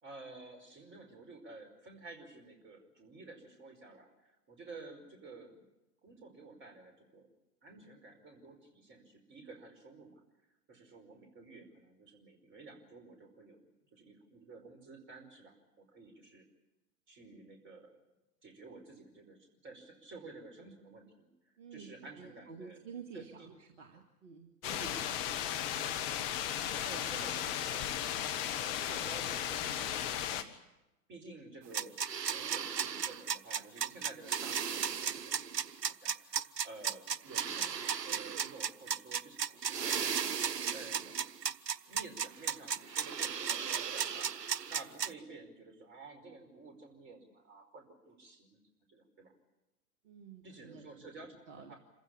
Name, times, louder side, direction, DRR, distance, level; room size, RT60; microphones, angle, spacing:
voice 1, 0.0-5.6 6.0-7.3 7.6-10.2 10.7-13.6 13.9-16.4 17.1-18.0 18.4-21.3 21.7-22.8 23.1-23.5 24.6-30.4 31.1-32.0 32.3-35.5 35.8-40.0 40.7-41.1 41.9-48.6 48.9-49.3 50.4-51.8, right 3 dB, 25° right, 4 dB, 5.2 m, -52 dB
voice 2, 21.6-24.5 50.0-51.0 51.5-51.7, right 6 dB, 50° right, 3 dB, 2.3 m, -50 dB
sound 1, 24.6-30.4, left 10 dB, 35° left, 1.6 m, -35 dB
sound 2, 31.7-45.1, right 7 dB, 80° right, 0.7 m, -35 dB
27.0 x 15.5 x 8.7 m, 0.99 s
figure-of-eight pair, 110°, 48 cm